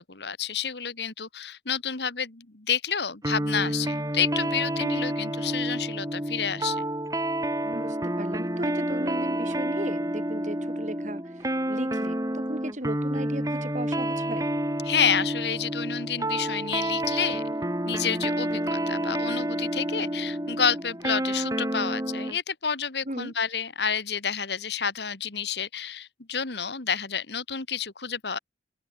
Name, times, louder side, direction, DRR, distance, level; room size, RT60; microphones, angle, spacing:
voice 1, 0.0-6.8 14.8-28.4, left 7 dB, 75° left, 1.9 m, -29 dB
sound 1, 3.2-22.4, right 1 dB, 20° right, 4.1 m, -29 dB
voice 2, 7.6-14.5 23.1-23.3, right 1 dB, 45° right, 4.0 m, -36 dB
head